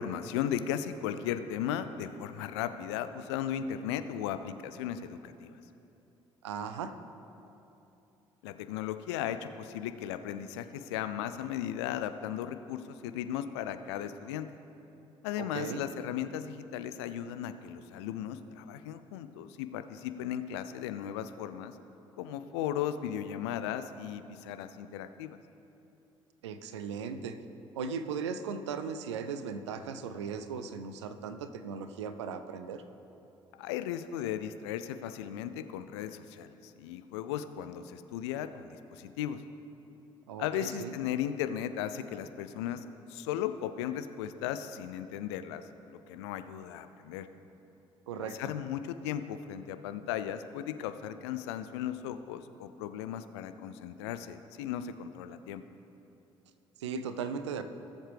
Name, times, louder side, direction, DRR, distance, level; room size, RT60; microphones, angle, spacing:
voice 1, 0.0-5.6 8.4-14.5 15.2-21.8 22.2-25.4 33.6-39.4 40.4-42.8 43.1-47.3 48.2-55.6, left 10 dB, 70° left, 11 dB, 0.5 m, -36 dB
voice 2, 6.4-6.9 15.4-15.8 26.4-27.4 27.7-32.8 40.3-40.9 48.1-48.4 56.8-57.6, right 6 dB, 80° right, 10 dB, 0.5 m, -37 dB
18.5 x 7.2 x 3.4 m, 2.9 s
figure-of-eight pair, 50°, 15 cm